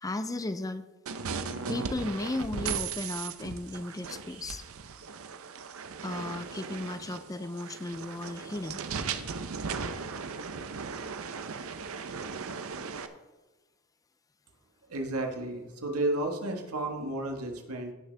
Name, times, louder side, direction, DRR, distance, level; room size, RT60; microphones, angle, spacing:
voice 1, 0.0-0.8 1.7-4.7 6.0-8.8, left 2 dB, 15° left, 11 dB, 0.4 m, -35 dB
sound 1, 1.1-13.1, right 5 dB, 70° right, 0.7 m, -37 dB
voice 2, 14.9-17.9, right 2 dB, 90° right, 3 dB, 1.5 m, -32 dB
17.0 x 6.4 x 3.4 m, 1.1 s
head